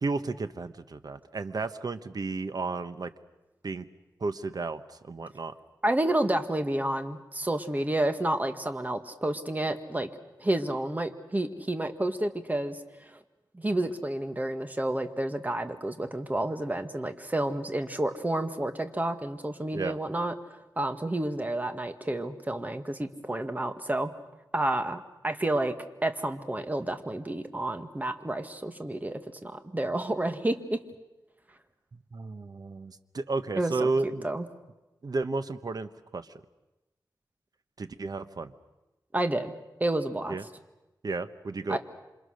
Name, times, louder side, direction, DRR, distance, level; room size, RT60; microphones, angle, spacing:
voice 1, 0.0-3.1 3.6-3.9 4.2-5.5 19.7-20.0 31.9-34.2 35.0-36.3 37.8-38.5 40.3-40.4 41.0-41.8, right 3 dB, 55° right, 11 dB, 1.2 m, -33 dB
voice 2, 5.8-10.1 10.4-13.2 13.5-20.3 20.8-24.1 24.5-25.7 26.0-30.8 33.6-33.9 34.2-34.5 39.1-39.5 39.8-40.4 41.7-41.8, right 1 dB, 20° right, 8 dB, 1.8 m, -30 dB
28.0 x 26.0 x 6.6 m, 1.0 s
wide cardioid pair, 95°, 8 cm